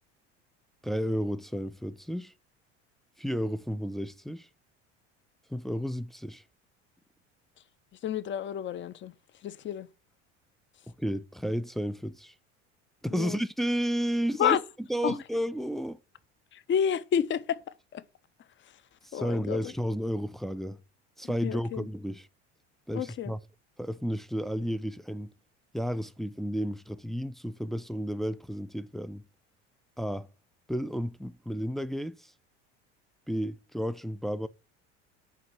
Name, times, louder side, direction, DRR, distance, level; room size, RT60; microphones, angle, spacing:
voice 1, 0.8-2.3 3.2-4.5 5.5-6.4 11.0-12.3 13.0-14.6 14.9-16.0 19.1-20.8 21.2-22.2 22.9-23.4 23.8-25.3 25.7-29.2 30.0-30.3 30.7-32.3 33.3-34.5, equal, ahead, 0.3 m, -32 dB
voice 2, 8.0-9.9 13.1-13.4 14.4-14.6 15.0-15.2 16.5-17.6 17.9-18.0 18.6-18.8 19.1-19.7 21.2-21.9 22.9-23.3, left 8 dB, 35° left, 0.6 m, -30 dB
5.8 x 4.6 x 5.8 m
hypercardioid pair, 80°, 35 cm